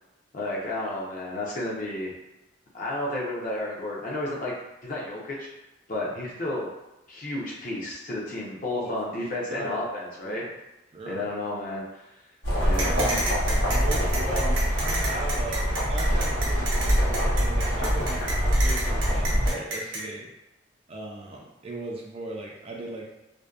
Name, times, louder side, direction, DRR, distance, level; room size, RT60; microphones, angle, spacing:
voice 1, 0.3-2.2 2.7-4.5 4.8-5.5 5.9-6.7 7.1-10.5 11.1-12.1 12.6-12.9, left 1 dB, 45° left, -4 dB, 0.6 m, -32 dB
voice 2, 9.2-9.9 10.2-10.5 10.9-11.3 12.8-13.2 13.7-20.3 20.9-23.1, right 2 dB, 30° right, -2 dB, 0.3 m, -37 dB
sound 1, 12.4-19.5, equal, 65° left, 0.9 m, -24 dB
sound 2, 12.8-20.0, right 2 dB, 70° right, 0.7 m, -31 dB
2.6 x 2.1 x 2.3 m, 0.98 s
head